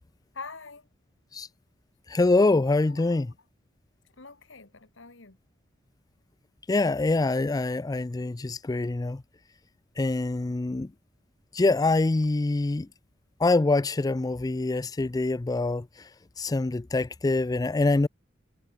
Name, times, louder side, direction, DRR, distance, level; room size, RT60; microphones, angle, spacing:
voice 1, 0.3-0.9 2.9-3.2 4.2-5.4, left 4 dB, 65° left, 2.1 m, -44 dB
voice 2, 2.1-3.3 6.7-9.2 10.0-10.9 11.5-12.9 13.4-16.1 16.4-18.1, left 2 dB, 20° left, 0.4 m, -25 dB
head